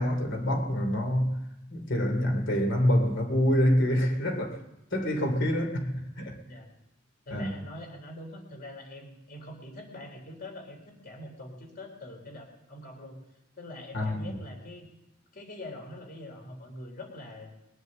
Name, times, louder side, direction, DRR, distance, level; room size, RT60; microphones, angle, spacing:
voice 1, 0.0-1.4 1.7-4.6 4.9-6.4 7.3-7.5 13.9-14.3, equal, 65° left, 3.0 m, -26 dB
voice 2, 7.3-13.3 13.5-14.9 15.3-17.5, left 1 dB, 50° left, 4.1 m, -44 dB
22.0 x 8.0 x 7.7 m
head